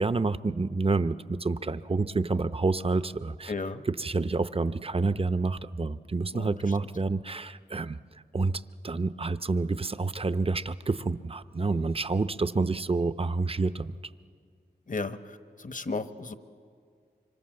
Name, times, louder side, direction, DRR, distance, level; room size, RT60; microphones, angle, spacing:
voice 1, 0.0-3.5 3.8-8.0 8.3-14.0, right 3 dB, 35° right, 13 dB, 0.7 m, -28 dB
voice 2, 3.5-3.8 6.3-6.5 14.9-15.2 15.6-16.3, left 3 dB, 50° left, 10 dB, 1.1 m, -33 dB
25.0 x 25.0 x 7.8 m, 2.1 s
cardioid pair, 55°, 18 cm